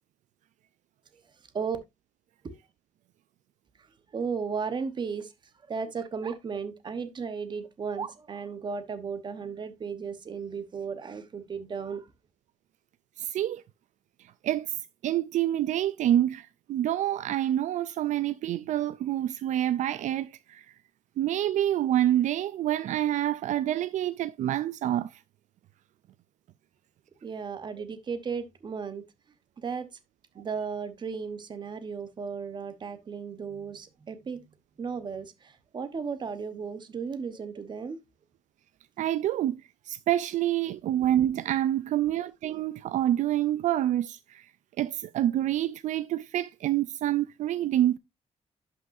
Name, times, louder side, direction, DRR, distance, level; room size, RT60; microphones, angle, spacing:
voice 1, 4.1-5.3 5.7-12.1 27.2-29.0 29.6-29.9 30.3-34.4 34.8-38.0, right 5 dB, 40° right, 1.1 m, -35 dB
voice 2, 13.2-13.6 14.4-14.8 15.0-20.7 21.2-25.2 39.0-44.5 44.8-48.0, right 12 dB, 80° right, 0.4 m, -27 dB
11.5 x 5.7 x 2.6 m
wide cardioid pair, 150°, 12 cm